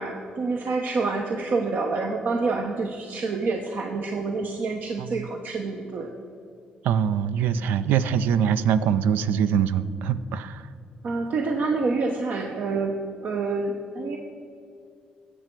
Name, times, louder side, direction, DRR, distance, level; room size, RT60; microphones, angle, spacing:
voice 1, 0.0-6.1 11.0-13.0 13.2-14.2, right 3 dB, 60° right, 3 dB, 0.8 m, -27 dB
voice 2, 6.8-10.7, right 8 dB, 85° right, 13 dB, 0.4 m, -23 dB
12.5 x 7.7 x 4.6 m, 2.5 s
supercardioid pair, 70°, 3 cm